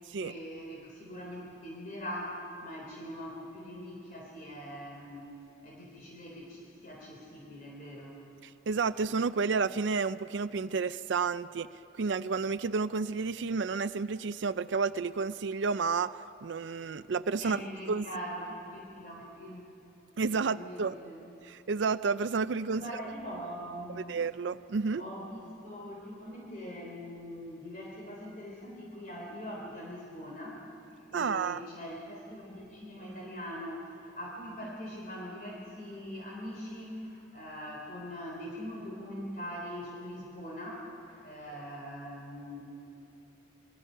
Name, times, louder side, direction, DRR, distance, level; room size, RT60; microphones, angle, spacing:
voice 1, 0.1-5.4 5.6-8.2 17.4-19.6 20.2-21.2 22.7-24.2 25.0-30.7 31.1-42.7, equal, 45° left, -3 dB, 3.2 m, -42 dB
voice 2, 8.7-11.7 11.9-18.1 20.2-21.0 21.4-22.8 24.1-25.0 31.1-31.6, right 4 dB, 75° right, 12 dB, 0.5 m, -31 dB
26.0 x 22.0 x 5.6 m, 2.8 s
head